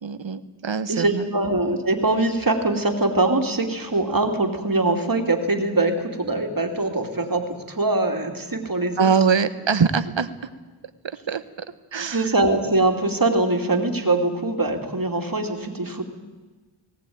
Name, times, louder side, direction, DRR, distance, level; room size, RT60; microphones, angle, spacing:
voice 1, 0.0-1.3 9.0-10.5 11.0-11.7 11.9-12.3, right 6 dB, 70° right, 12 dB, 1.3 m, -23 dB
voice 2, 0.9-9.1 12.1-16.0, right 2 dB, 45° right, 4 dB, 2.7 m, -23 dB
19.0 x 18.5 x 9.4 m, 1.3 s
wide cardioid pair, 55°, 47 cm